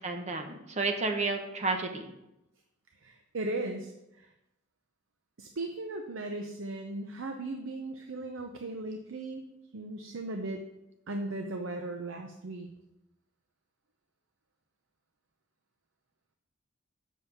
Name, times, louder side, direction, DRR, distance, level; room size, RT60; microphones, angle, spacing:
voice 1, 0.0-2.1, right 3 dB, 35° right, 5 dB, 0.8 m, -31 dB
voice 2, 3.0-4.3 5.4-9.4 9.7-10.6 11.1-12.7, right 2 dB, 75° right, 4 dB, 0.7 m, -37 dB
6.4 x 5.6 x 7.1 m, 0.89 s
head